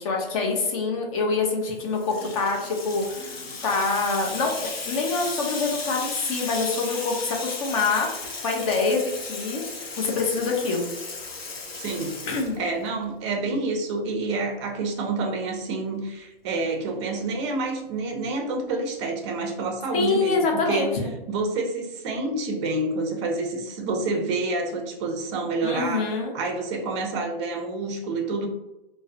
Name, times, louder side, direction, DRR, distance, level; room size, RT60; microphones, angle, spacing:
voice 1, 0.0-8.1 8.4-9.6 10.0-10.9 12.3-12.6 19.9-21.1 25.6-26.3, left 4 dB, 35° left, 1 dB, 0.6 m, -25 dB
Water tap faucet / Sink (filling or washing), 1.6-13.1, left 4 dB, 85° left, 0.7 m, -35 dB
voice 2, 11.7-12.2 12.6-20.9 21.3-28.5, right 3 dB, 30° right, 3 dB, 0.5 m, -28 dB
2.3 x 2.0 x 2.6 m, 0.98 s
hypercardioid pair, 130°, 29 cm